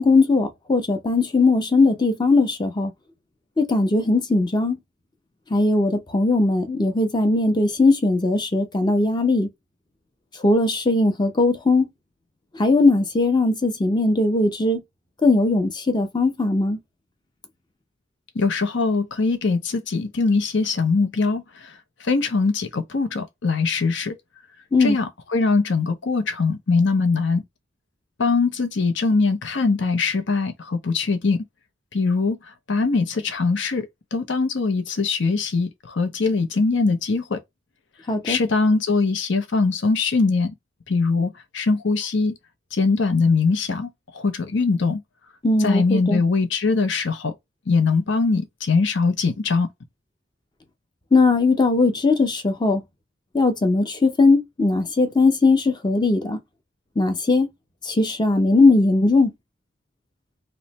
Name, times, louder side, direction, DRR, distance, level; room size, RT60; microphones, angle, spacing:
voice 1, 0.0-2.9 3.6-4.8 5.5-9.5 10.4-11.9 12.5-14.8 15.2-16.8 24.7-25.0 38.1-38.4 45.4-46.2 51.1-52.8 53.3-56.4 57.0-57.5 57.8-59.3, left 3 dB, 20° left, 0.7 m, -19 dB
voice 2, 18.3-21.7 22.0-24.1 24.8-27.4 28.2-31.4 31.9-32.4 32.7-37.4 38.2-40.5 40.9-42.3 42.7-43.9 44.1-45.0 45.6-47.3 47.7-49.7, left 4 dB, 65° left, 0.7 m, -22 dB
3.0 x 2.1 x 4.0 m
head